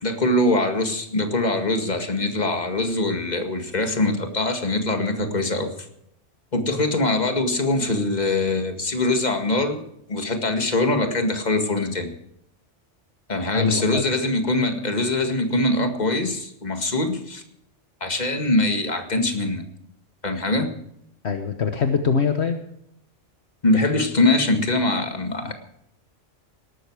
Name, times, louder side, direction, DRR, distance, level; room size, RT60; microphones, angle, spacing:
voice 1, 0.0-5.7 6.5-9.8 10.1-12.1 13.3-17.4 18.0-19.6 20.2-20.7 23.6-25.5, left 2 dB, 35° left, 6 dB, 2.0 m, -23 dB
voice 2, 13.5-14.0 21.2-22.6 25.4-25.5, left 6 dB, 65° left, 7 dB, 1.4 m, -23 dB
18.5 x 13.0 x 4.7 m, 0.73 s
omnidirectional pair, 1.2 m